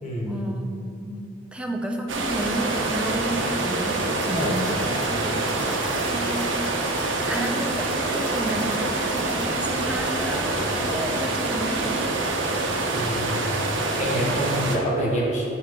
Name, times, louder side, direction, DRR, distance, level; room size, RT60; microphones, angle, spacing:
voice 1, 0.2-6.9 7.2-12.2, right 1 dB, 5° right, 2 dB, 0.5 m, -32 dB
sound 1, 2.1-14.8, right 2 dB, 70° right, 0.8 m, -26 dB
sound 2, 4.0-11.3, left 3 dB, 75° left, 0.6 m, -41 dB
voice 2, 4.4-4.7 12.9-13.6 14.0-15.5, equal, 40° left, -4 dB, 1.2 m, -26 dB
sound 3, 5.1-13.3, right 3 dB, 40° right, 0.9 m, -43 dB
6.4 x 5.7 x 3.6 m, 2.8 s
head